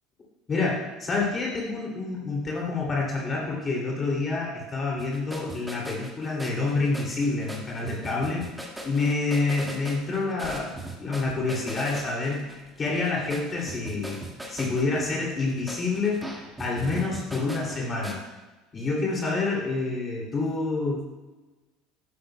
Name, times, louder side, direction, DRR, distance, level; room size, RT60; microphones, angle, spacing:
voice 1, 0.5-8.5 8.8-14.2 14.5-16.3 16.6-18.2 18.7-21.1, left 3 dB, 30° left, -3 dB, 2.6 m, -28 dB
sound 1, 5.0-18.2, right 1 dB, 5° right, 1.7 m, -39 dB
11.5 x 9.6 x 2.2 m, 1.2 s
hypercardioid pair, 75°, 0 cm